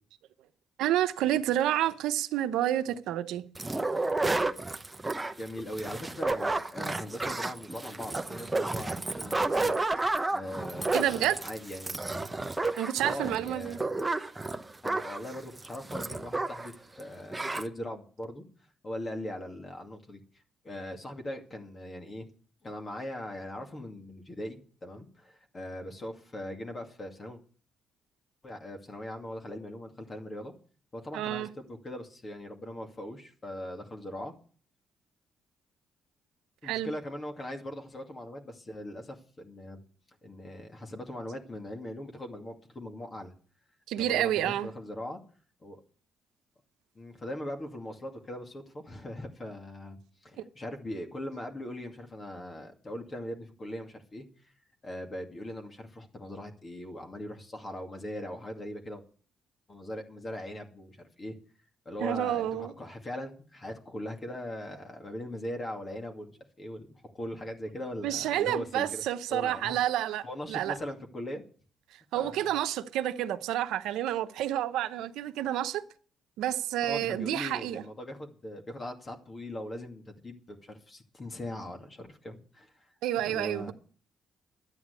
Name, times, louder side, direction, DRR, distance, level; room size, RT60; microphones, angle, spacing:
voice 1, 0.8-3.4 10.9-11.4 12.8-13.8 31.1-31.5 36.6-36.9 43.9-44.7 62.0-62.7 68.0-70.8 72.1-75.8 76.4-77.8 83.0-83.7, right 12 dB, 90° right, 0.8 m, -29 dB
sound 1, 3.5-16.7 17.0-17.1 17.3-17.7, right 2 dB, 15° right, 1.0 m, -31 dB
voice 2, 4.8-9.7 10.3-12.0 12.6-13.8 14.8-18.4 18.8-20.2 20.6-22.3 22.6-27.4 28.4-30.5 30.9-34.3 36.6-39.8 40.2-43.3 44.0-45.2 45.6-45.8 46.9-54.5 54.8-59.0 59.7-61.3 61.9-69.0 69.3-69.8 70.2-71.4 72.1-72.4 76.8-82.9 83.2-83.7, left 1 dB, 35° left, 2.3 m, -40 dB
11.5 x 9.1 x 8.3 m
cardioid pair, 90°, 0 cm